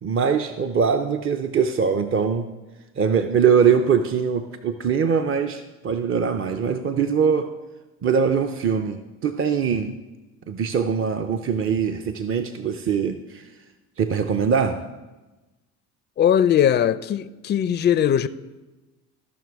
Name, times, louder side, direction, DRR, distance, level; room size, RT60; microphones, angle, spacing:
voice 1, 0.0-2.5 3.0-7.5 8.0-10.0 10.5-13.5 14.0-14.8, right 6 dB, 30° right, 0.5 m, -22 dB
voice 2, 16.2-18.3, left 9 dB, 25° left, 0.4 m, -19 dB
14.5 x 5.9 x 3.5 m
hypercardioid pair, 60°, 41 cm